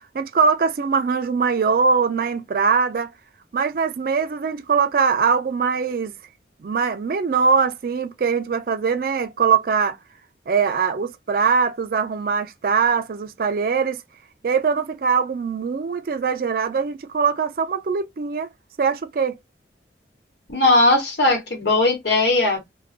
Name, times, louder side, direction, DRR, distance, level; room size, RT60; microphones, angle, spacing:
voice 1, 0.1-3.1 3.5-6.1 6.6-10.0 10.5-14.0 14.4-18.5 18.8-19.4, right 5 dB, 50° right, 0.3 m, -22 dB
voice 2, 20.5-22.6, left 2 dB, 70° left, 1.2 m, -18 dB
2.4 x 2.2 x 2.4 m
head